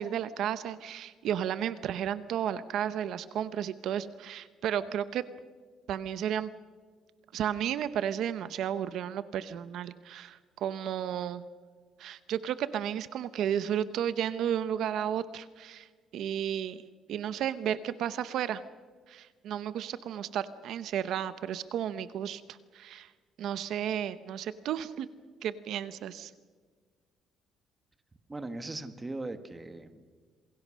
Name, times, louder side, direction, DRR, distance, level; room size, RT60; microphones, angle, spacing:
voice 1, 0.0-5.3 5.9-6.5 7.3-11.4 12.0-15.9 16.1-16.8 17.1-18.6 19.1-23.1 23.4-25.1 25.4-26.3, right 9 dB, 60° right, 13 dB, 0.8 m, -33 dB
voice 2, 28.3-30.1, right 2 dB, 15° right, 10 dB, 1.4 m, -39 dB
27.5 x 22.5 x 6.3 m, 1.5 s
cardioid pair, 160°, 0 cm